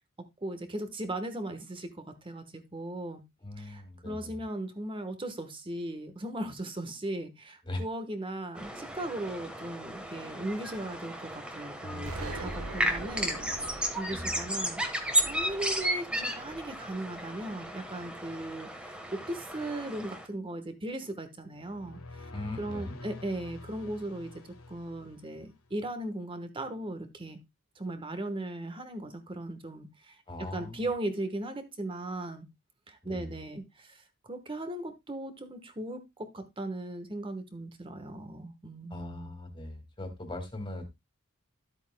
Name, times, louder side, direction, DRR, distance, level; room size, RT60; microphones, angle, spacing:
voice 1, 0.4-3.2 3.6-22.3 22.6-24.3 24.7-27.4 27.8-30.2 30.5-32.5 32.9-39.3, right 1 dB, 25° right, 9 dB, 1.2 m, -38 dB
voice 2, 3.4-4.4 7.6-7.8 11.8-12.8 14.1-14.4 22.3-23.0 30.3-30.9 33.0-33.3 38.9-40.9, left 1 dB, 25° left, 5 dB, 2.1 m, -40 dB
sound 1, 8.6-20.3, equal, 5° right, 1.3 m, -34 dB
Explosion, 12.1-16.9, right 2 dB, 90° right, 1.2 m, -43 dB
sound 2, 21.5-25.9, left 2 dB, 85° left, 1.4 m, -48 dB
12.5 x 8.1 x 2.2 m, 0.21 s
head